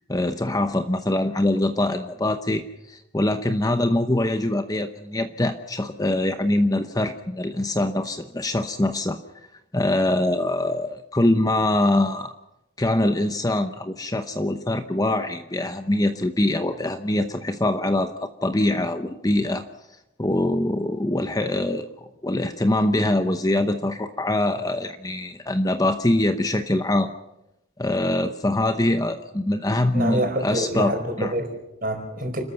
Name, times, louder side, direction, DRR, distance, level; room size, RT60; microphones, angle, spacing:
voice 1, 0.0-9.2 9.7-12.3 12.8-19.6 20.2-27.1 27.8-30.9 31.2-31.3, left 1 dB, 15° left, 8 dB, 0.8 m, -23 dB
voice 2, 29.9-32.4, right 1 dB, 40° right, 4 dB, 4.7 m, -27 dB
29.5 x 13.5 x 7.0 m, 0.89 s
head